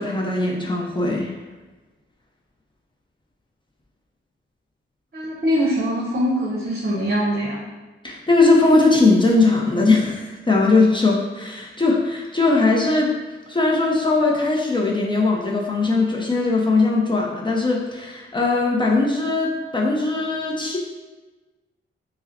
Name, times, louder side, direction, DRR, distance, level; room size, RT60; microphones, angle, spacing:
voice 1, 0.0-1.3 8.0-13.2 13.5-20.8, left 3 dB, 20° left, -2 dB, 0.6 m, -19 dB
voice 2, 5.1-7.6, equal, 50° right, -4 dB, 0.8 m, -22 dB
5.3 x 2.1 x 2.6 m, 1.2 s
cardioid pair, 75°, 21 cm